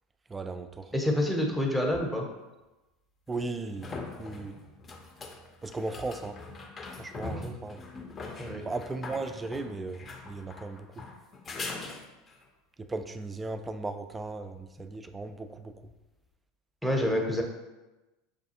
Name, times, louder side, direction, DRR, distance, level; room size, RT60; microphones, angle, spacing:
voice 1, 0.3-0.9 3.3-4.6 5.6-6.4 7.0-7.8 8.6-11.1 12.8-15.9, right 3 dB, 15° right, 9 dB, 0.3 m, -37 dB
voice 2, 0.9-2.3 7.2-7.5 8.4-8.6 16.8-17.4, left 1 dB, ahead, 1 dB, 0.8 m, -28 dB
sound 1, 1.9-2.0 3.3-12.5 15.9-16.0, left 3 dB, 30° left, 0.6 m, -42 dB
6.6 x 2.3 x 2.8 m, 1.1 s
figure-of-eight pair, 80°, 0 cm